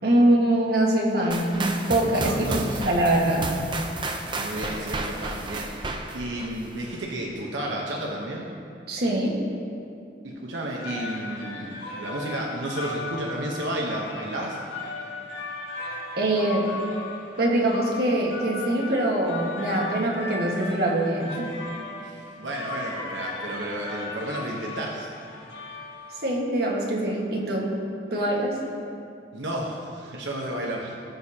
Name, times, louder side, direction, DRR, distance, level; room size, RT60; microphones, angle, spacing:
voice 1, 0.0-3.6 8.9-9.4 16.2-16.7 17.4-21.5 26.2-27.7 28.1-28.6, right 1 dB, 60° right, -2 dB, 1.7 m, -23 dB
sound 1, 1.3-7.2, right 2 dB, 25° right, 0.7 m, -32 dB
voice 2, 2.2-2.8 4.4-8.5 10.2-14.6 22.0-25.1 29.3-31.1, right 1 dB, 90° right, -2 dB, 1.1 m, -32 dB
sound 2, 10.6-26.5, left 2 dB, 75° left, 1.9 m, -37 dB
19.5 x 6.5 x 2.9 m, 2.5 s
head